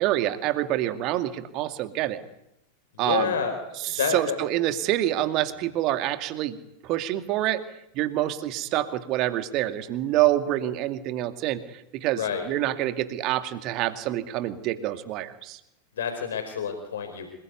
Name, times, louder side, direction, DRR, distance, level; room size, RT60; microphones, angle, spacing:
voice 1, 0.0-2.2 3.0-3.3 3.8-6.6 6.8-7.6 7.9-15.6, right 14 dB, 40° right, 9 dB, 2.3 m, -27 dB
voice 2, 2.9-4.4 12.1-12.5 16.0-17.3, left 7 dB, 60° left, 7 dB, 4.3 m, -29 dB
26.5 x 22.0 x 9.5 m, 0.85 s
figure-of-eight pair, 90°, 0 cm